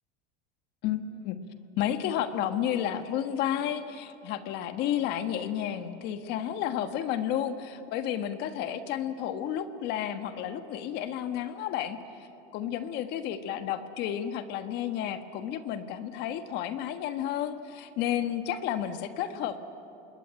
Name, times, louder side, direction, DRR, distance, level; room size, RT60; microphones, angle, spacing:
voice 1, 0.8-1.4 1.8-12.3 12.5-19.6, left 10 dB, 60° left, 9 dB, 1.5 m, -31 dB
27.0 x 21.5 x 8.9 m, 3.0 s
supercardioid pair, 130°, 19 cm